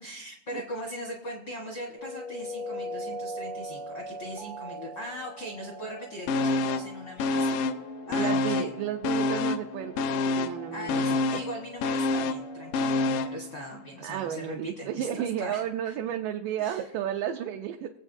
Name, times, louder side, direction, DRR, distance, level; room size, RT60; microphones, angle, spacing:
voice 1, 0.0-7.6 8.1-8.7 10.7-15.9 16.6-16.8, equal, 65° left, -1 dB, 1.1 m, -40 dB
sound 1, 2.0-13.4, equal, 65° right, 1.3 m, -42 dB
sound 2, 6.3-6.9 7.2-8.8 9.0-13.4 13.8-13.9, left 3 dB, 80° left, 2.1 m, -27 dB
voice 2, 8.1-11.4 14.0-17.9, right 10 dB, 80° right, 4 dB, 2.1 m, -33 dB
22.0 x 7.9 x 2.6 m, 0.89 s
omnidirectional pair, 4.1 m